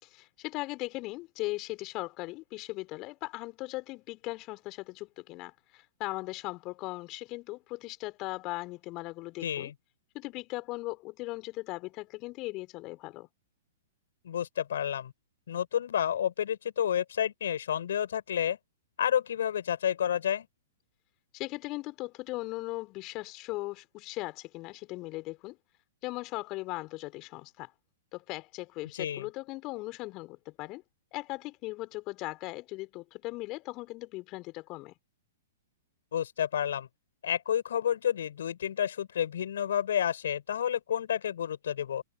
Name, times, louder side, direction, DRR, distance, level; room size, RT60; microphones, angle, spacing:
voice 1, 0.0-9.7 10.1-13.3 21.3-25.6 26.0-27.7 28.1-30.8 31.1-34.9, left 21 dB, 35° left, 3.9 m, -38 dB
voice 2, 9.4-9.7 14.2-15.1 15.5-18.6 19.0-20.5 28.9-29.3 36.1-36.9 37.2-42.0, left 9 dB, 60° left, 7.1 m, -30 dB
figure-of-eight pair, 110°, 0 cm